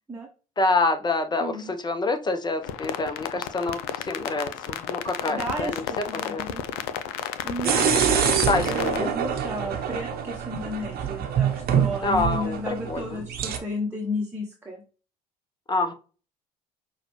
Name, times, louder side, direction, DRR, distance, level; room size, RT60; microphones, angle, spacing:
voice 1, 0.6-5.8 6.1-6.4 7.6-7.9 8.5-9.2 12.0-13.2 15.7-15.9, left 2 dB, 20° left, 8 dB, 0.8 m, -27 dB
voice 2, 1.4-1.7 5.3-6.6 7.4-14.8, left 1 dB, 10° right, -1 dB, 1.0 m, -33 dB
sound 1, 2.6-9.0, left 10 dB, 65° left, 0.5 m, -32 dB
sound 2, 7.6-13.6, right 8 dB, 50° right, 0.9 m, -25 dB
5.9 x 2.4 x 3.1 m, 0.36 s
hypercardioid pair, 60°, 20 cm